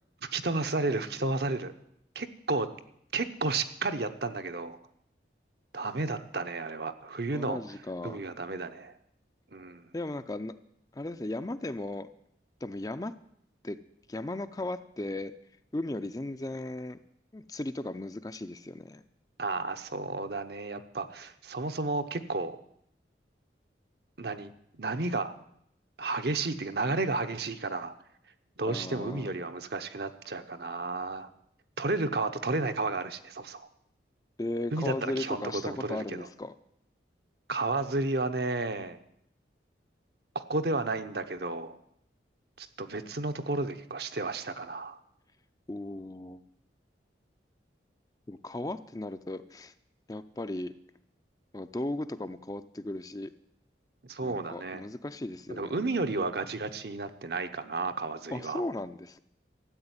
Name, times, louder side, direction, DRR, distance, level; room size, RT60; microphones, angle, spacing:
voice 1, 0.2-1.7 2.1-2.7 3.1-4.8 5.7-7.6 8.0-8.9 9.5-9.9 19.4-22.6 24.2-24.5 24.8-25.4 26.0-27.9 28.6-31.3 31.8-33.7 34.7-36.3 37.5-39.0 40.3-41.8 42.6-45.0 54.0-54.8 55.5-58.6, right 3 dB, 60° right, 8 dB, 0.9 m, -32 dB
voice 2, 7.3-8.2 9.9-10.5 10.9-12.1 12.6-13.1 13.6-13.8 14.1-15.3 15.7-17.0 17.3-19.0 28.7-29.3 34.4-36.5 45.7-46.4 48.3-49.7 50.1-50.7 51.5-53.3 54.2-55.7 58.3-59.2, left 1 dB, 20° left, 11 dB, 0.5 m, -36 dB
13.5 x 8.1 x 9.6 m, 0.73 s
head